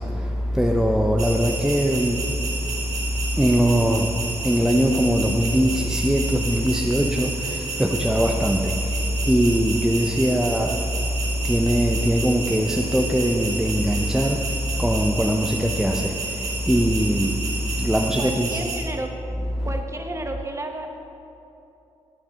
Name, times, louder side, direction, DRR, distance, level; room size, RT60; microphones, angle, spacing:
voice 1, 0.0-18.6 19.6-19.7, equal, 5° right, 1 dB, 0.6 m, -22 dB
sound 1, 1.2-18.8, right 3 dB, 70° right, 2.4 m, -31 dB
voice 2, 18.2-19.1 19.6-21.0, right 1 dB, 25° right, 4 dB, 1.2 m, -32 dB
11.5 x 8.5 x 3.7 m, 2.8 s
supercardioid pair, 60°, 12 cm